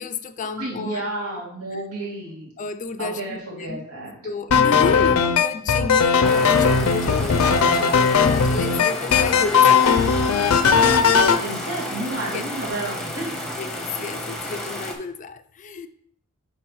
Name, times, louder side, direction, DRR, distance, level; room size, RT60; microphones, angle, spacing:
voice 1, 0.0-1.1 1.7-1.8 2.6-3.9 4.2-10.1 12.2-12.5 13.6-15.9, left 4 dB, 35° left, 0.3 m, -31 dB
voice 2, 0.6-2.5 3.0-4.2 4.9-5.1 11.4-13.4, right 2 dB, 85° right, 2.6 m, -31 dB
sound 1, 4.5-11.4, left 6 dB, 90° left, 0.5 m, -18 dB
sound 2, 6.2-14.9, left 1 dB, 5° left, 0.9 m, -31 dB
9.8 x 3.8 x 3.1 m
head